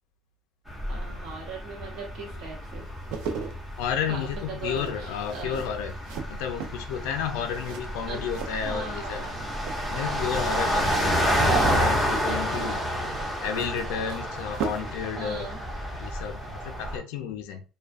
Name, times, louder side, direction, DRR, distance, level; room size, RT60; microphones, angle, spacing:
sound 1, 0.7-17.0, equal, 5° right, 0.7 m, -30 dB
voice 1, 0.9-2.9 3.3-3.5 4.1-5.6 8.1-8.2 8.6-9.3 10.8-11.2 11.5-11.7 12.3-12.4 14.0-14.2 15.2-15.6, right 4 dB, 65° right, -2 dB, 0.9 m, -39 dB
sound 2, 2.8-9.3 9.6-10.2 11.5-15.0 15.3-15.5, right 6 dB, 80° right, 0.5 m, -39 dB
voice 2, 3.8-5.9 6.3-9.2 9.9-12.8 13.4-15.5 16.0-17.6, left 7 dB, 90° left, 7 dB, 0.3 m, -32 dB
2.3 x 2.2 x 2.4 m, 0.35 s
cardioid pair, 120°, 0 cm